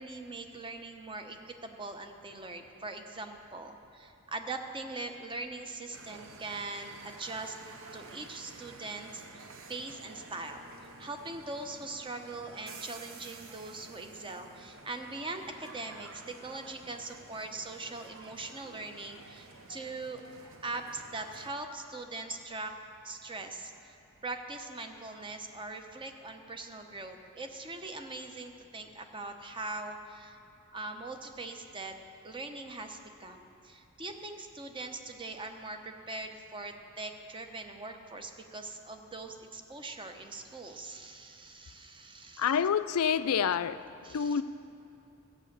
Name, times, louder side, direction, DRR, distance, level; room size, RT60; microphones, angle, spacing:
voice 1, 0.0-7.6 7.9-20.2 20.6-22.7 23.0-24.0 24.2-30.4 30.7-42.6 44.0-44.4, right 3 dB, 25° right, 0.8 m, -41 dB
sound 1, 5.9-21.5, right 3 dB, 65° right, 0.9 m, -51 dB
voice 2, 42.4-44.4, left 7 dB, 80° left, 0.4 m, -28 dB
14.0 x 8.5 x 6.7 m
head